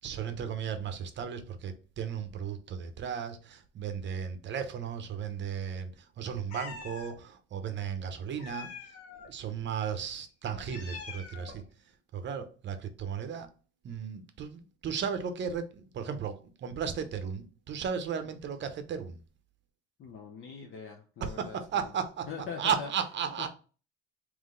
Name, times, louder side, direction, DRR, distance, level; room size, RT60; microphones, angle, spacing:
voice 1, 0.0-8.7 9.3-11.6 12.1-13.5 13.8-19.2 21.2-22.3 22.6-23.5, right 7 dB, 40° right, 0.7 m, -35 dB
Meow, 6.5-7.1 8.4-9.3 10.5-11.7, left 5 dB, 80° left, 1.2 m, -44 dB
voice 2, 20.0-21.9 22.3-22.9, left 6 dB, 40° left, 0.7 m, -42 dB
3.8 x 3.1 x 3.7 m
cardioid pair, 130°, 30 cm